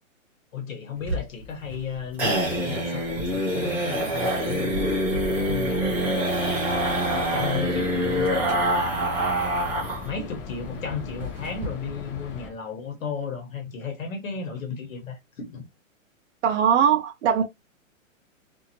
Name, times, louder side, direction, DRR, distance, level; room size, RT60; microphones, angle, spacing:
voice 1, 0.5-4.9 5.4-6.7 7.3-9.0 10.0-15.6, left 5 dB, 70° left, 1.3 m, -34 dB
sound 1, 1.0-10.1 10.4-10.5 10.8-10.9 11.2-11.7, right 1 dB, 5° right, 0.4 m, -25 dB
sound 2, 6.7-12.5, left 5 dB, 40° left, 0.8 m, -39 dB
voice 2, 16.4-17.4, right 8 dB, 60° right, 0.5 m, -20 dB
2.7 x 2.5 x 2.8 m
hypercardioid pair, 140°, 41 cm